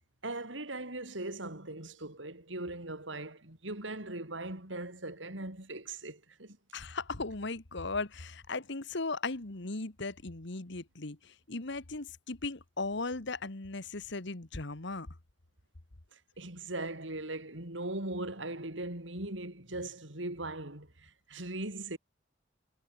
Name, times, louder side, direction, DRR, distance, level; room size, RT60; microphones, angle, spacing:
voice 1, 0.2-6.6 16.1-22.0, right 2 dB, 70° right, 5.1 m, -39 dB
voice 2, 6.7-15.1, left 3 dB, 65° left, 1.7 m, -37 dB
head